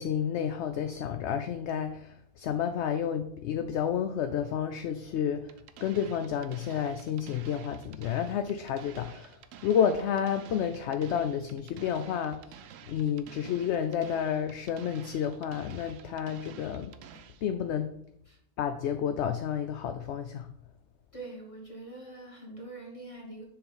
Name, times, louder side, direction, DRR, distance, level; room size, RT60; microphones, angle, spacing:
voice 1, 0.0-12.6 12.9-16.9 17.4-17.9 18.6-20.5, left 8 dB, 65° left, 8 dB, 0.7 m, -30 dB
sound 1, 5.5-17.5, right 9 dB, 70° right, 0.9 m, -51 dB
voice 2, 21.1-23.4, right 2 dB, 25° left, -1 dB, 2.0 m, -44 dB
6.8 x 3.8 x 5.5 m, 0.77 s
omnidirectional pair, 1.5 m